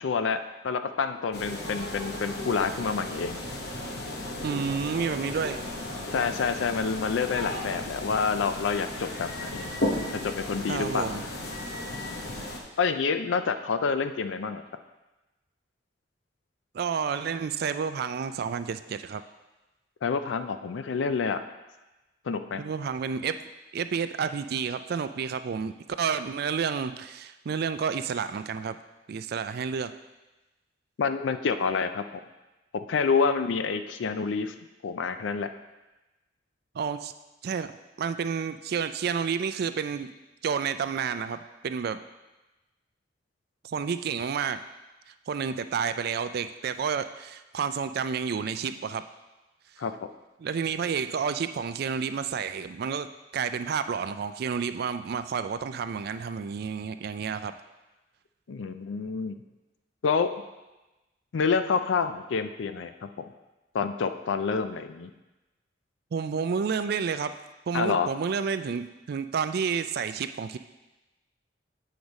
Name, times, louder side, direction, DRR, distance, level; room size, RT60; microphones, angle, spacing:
voice 1, 0.0-3.4 6.1-9.7 10.1-11.1 12.8-14.6 20.0-21.4 22.3-22.6 31.0-32.0 32.9-34.5 34.8-35.5 49.8-49.9 58.5-59.4 60.0-60.3 61.3-63.1 63.7-65.1 67.7-68.1, left 5 dB, 80° left, 9 dB, 0.4 m, -28 dB
sound 1, 1.3-12.6, left 1 dB, 60° left, 0.9 m, -35 dB
voice 2, 4.4-5.6 10.7-11.2 16.7-19.2 22.6-23.4 23.7-28.8 29.1-29.9 36.7-37.1 37.4-37.7 38.0-40.1 40.4-42.0 43.6-44.6 45.3-49.0 50.4-57.5 66.1-67.3 67.7-70.6, right 6 dB, 55° right, 11 dB, 0.4 m, -30 dB
7.9 x 5.0 x 4.1 m, 1.1 s
head